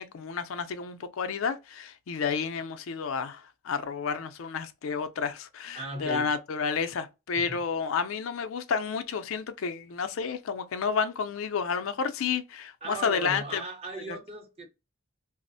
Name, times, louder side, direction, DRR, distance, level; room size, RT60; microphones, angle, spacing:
voice 1, 0.0-13.6 14.1-14.2, left 6 dB, 80° left, 0.4 m, -31 dB
voice 2, 5.7-6.3 7.3-7.6 12.8-14.7, right 2 dB, 30° right, 0.8 m, -38 dB
2.4 x 2.0 x 2.5 m
head